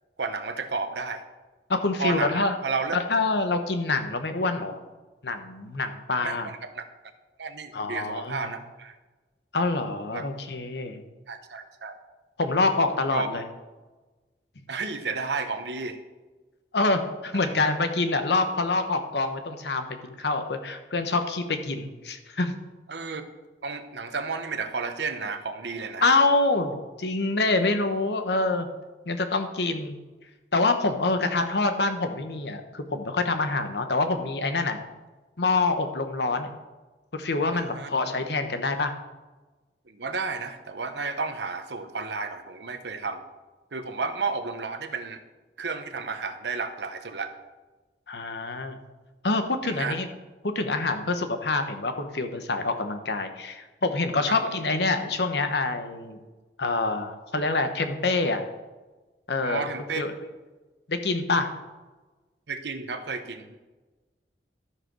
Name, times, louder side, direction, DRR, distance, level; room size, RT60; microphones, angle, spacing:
voice 1, 0.2-1.2 2.0-3.0 6.2-6.8 7.4-9.0 10.1-10.3 11.3-12.0 13.1-13.4 14.7-16.0 17.3-17.5 22.9-23.2 23.6-26.1 37.5-37.9 39.9-43.2 43.7-45.2 45.6-47.3 49.6-49.9 54.3-54.5 59.4-60.0 62.5-63.6, right 4 dB, 75° right, 7 dB, 1.0 m, -32 dB
voice 2, 1.7-2.6 2.9-4.8 5.2-6.5 7.7-8.5 9.5-11.0 12.4-13.5 16.7-22.6 26.0-28.7 29.1-29.9 30.5-34.8 35.4-36.5 37.1-38.9 48.1-48.8 49.2-50.1 50.4-56.2 56.6-58.4 59.3-59.7 60.0-60.1 60.9-61.5, left 3 dB, 70° left, 7 dB, 1.0 m, -26 dB
13.0 x 4.9 x 6.2 m, 1.2 s
head